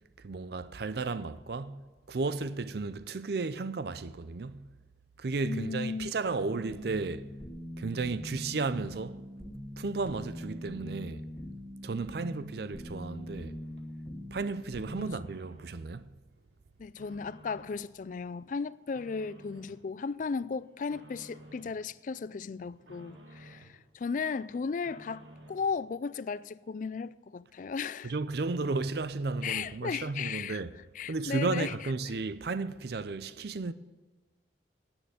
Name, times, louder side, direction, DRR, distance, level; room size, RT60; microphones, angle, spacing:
voice 1, 0.2-4.7 5.2-7.3 7.8-9.2 9.8-11.3 11.8-13.6 14.3-16.1 28.0-30.8 31.1-33.7, right 3 dB, 55° right, 0.5 m, -34 dB
voice 2, 5.4-6.1 15.0-15.1 16.8-28.1 29.4-30.6 31.0-31.7, left 5 dB, 45° left, 0.3 m, -35 dB
sound 1, 6.5-15.2, left 1 dB, 10° left, 1.3 m, -42 dB
sound 2, 13.0-13.9 14.3-15.9 16.3-17.9 18.3-19.8 20.2-21.8 22.2-23.8 24.2-25.8, right 1 dB, 75° right, 1.8 m, -55 dB
9.9 x 9.1 x 9.4 m
head